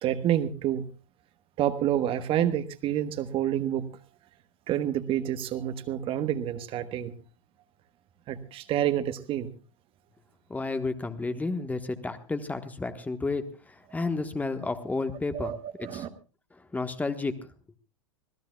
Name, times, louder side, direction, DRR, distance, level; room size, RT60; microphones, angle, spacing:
voice 1, 0.0-0.8 1.6-3.9 4.7-7.1 8.3-9.5 15.3-16.1, right 11 dB, 35° right, 11 dB, 1.3 m, -28 dB
voice 2, 10.5-15.5 15.8-16.1 16.7-17.5, left 3 dB, 10° left, 9 dB, 1.3 m, -31 dB
25.5 x 17.0 x 2.3 m, 0.34 s
figure-of-eight pair, 90°, 16 cm